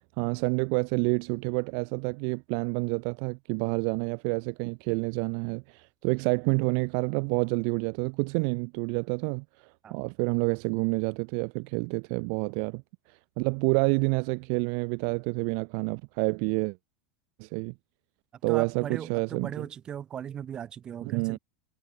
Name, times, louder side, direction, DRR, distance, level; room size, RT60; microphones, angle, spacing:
voice 1, 0.2-12.8 13.1-16.8 17.4-17.7 18.4-19.7 21.0-21.4, right 40 dB or more, 60° right, 1.4 m, -28 dB
voice 2, 18.5-21.4, right 9 dB, 35° right, 5.8 m, -38 dB
hypercardioid pair, 90°, 2 cm